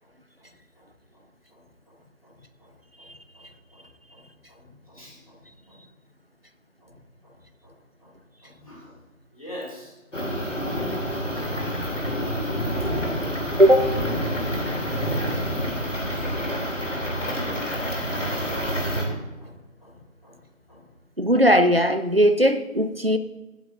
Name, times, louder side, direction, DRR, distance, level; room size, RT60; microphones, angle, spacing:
voice 1, 0.4-1.2 1.5-5.8 6.8-7.0 7.2-7.7 8.0-8.1 8.4-9.0 9.3-9.9 11.5-11.6 11.9-12.1 12.3-12.5 17.3-20.4 20.7-20.9, left 1 dB, 25° left, 2.5 m, -48 dB
sound 1, 10.1-19.1, equal, 65° left, 3.0 m, -27 dB
voice 2, 21.2-23.2, equal, 45° right, 0.5 m, -18 dB
16.5 x 9.1 x 2.6 m
figure-of-eight pair, 180°, 41 cm